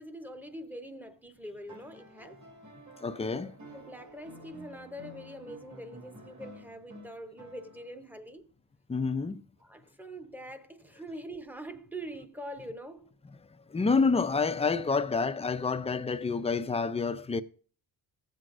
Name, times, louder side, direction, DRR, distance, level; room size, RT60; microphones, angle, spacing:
voice 1, 0.0-2.4 3.7-8.5 9.6-13.1, right 1 dB, 5° right, 0.8 m, -44 dB
sound 1, 1.7-8.1 9.6-9.7, right 1 dB, 40° right, 2.0 m, -51 dB
voice 2, 3.0-3.6 8.9-9.5 13.7-17.4, left 4 dB, 15° left, 0.4 m, -28 dB
14.5 x 7.6 x 2.6 m
cardioid pair, 110°, 44 cm